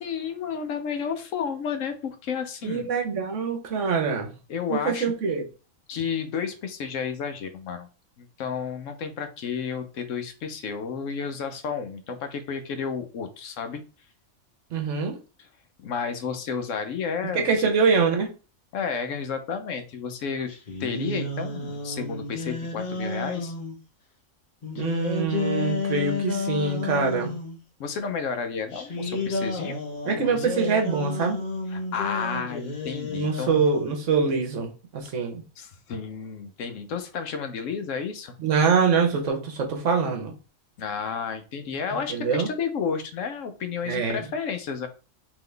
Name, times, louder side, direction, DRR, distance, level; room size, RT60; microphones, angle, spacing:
voice 1, 0.0-2.9 4.5-5.1 5.9-7.9 8.2-13.8 15.8-17.5 18.7-20.5 20.8-23.5 27.8-29.8 30.1-30.5 31.7-33.6 35.6-38.3 40.8-44.9, left 6 dB, 70° left, 8 dB, 1.0 m, -31 dB
voice 2, 2.6-4.3 4.7-5.5 14.7-15.2 17.3-18.3 24.8-27.3 30.1-31.4 33.1-35.4 38.4-40.3 42.1-42.5 43.8-44.2, right 5 dB, 65° right, 4 dB, 1.2 m, -24 dB
sound 1, 20.5-23.8 24.6-27.6 28.7-33.9, left 3 dB, 35° left, 0.9 m, -31 dB
3.8 x 3.0 x 3.2 m, 0.34 s
omnidirectional pair, 1.4 m